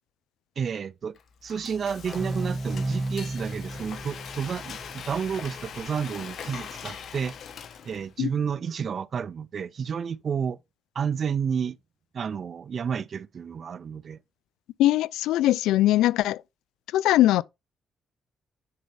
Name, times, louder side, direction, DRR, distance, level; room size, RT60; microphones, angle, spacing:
voice 1, 0.6-1.1 1.4-7.4 7.9-10.6 11.0-11.8 12.1-14.2, right 7 dB, 50° right, 0.4 m, -31 dB
Frying (food), 1.2-8.2, left 7 dB, 65° left, 1.1 m, -41 dB
sound 1, 2.1-5.5, right 2 dB, 5° right, 1.9 m, -33 dB
voice 2, 14.8-16.4 16.9-17.4, left 14 dB, 90° left, 0.3 m, -21 dB
9.5 x 4.1 x 3.3 m
cardioid pair, 90°, 0 cm